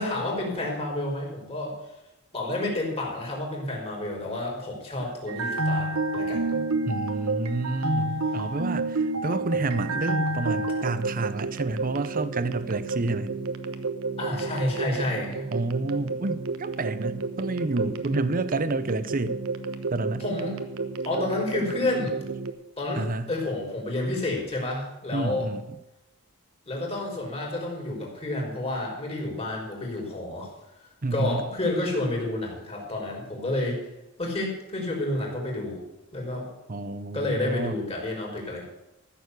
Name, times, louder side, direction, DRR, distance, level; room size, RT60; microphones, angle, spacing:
voice 1, 0.0-1.7 2.3-6.4 14.2-15.5 20.2-20.6 21.0-22.2 22.8-25.5 26.7-30.5 31.1-33.8 34.2-35.8 36.1-36.5 37.1-38.6, left 2 dB, 25° left, -1 dB, 4.5 m, -30 dB
sound 1, 5.3-22.5, right 3 dB, 70° right, 1.1 m, -30 dB
voice 2, 6.9-13.3 15.5-19.4 19.9-20.2 22.9-23.3 25.1-25.6 31.0-31.4 36.7-37.8, right 2 dB, 40° right, 13 dB, 0.7 m, -29 dB
14.5 x 7.0 x 8.2 m, 0.92 s
head